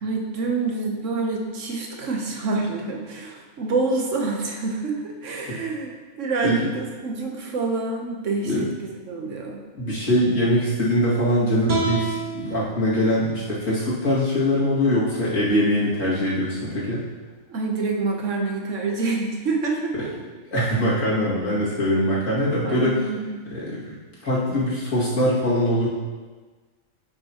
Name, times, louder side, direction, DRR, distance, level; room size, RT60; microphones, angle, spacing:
voice 1, 0.0-9.6 17.5-20.1 22.6-23.4, right 3 dB, 65° right, 1 dB, 1.3 m, -27 dB
voice 2, 9.7-17.0 20.5-23.0 23.5-24.0 24.2-25.9, equal, 65° left, -8 dB, 2.7 m, -22 dB
sound 1, 11.7-14.8, right 2 dB, 35° right, 1.3 m, -32 dB
10.0 x 6.3 x 2.9 m, 1.4 s
omnidirectional pair, 1.4 m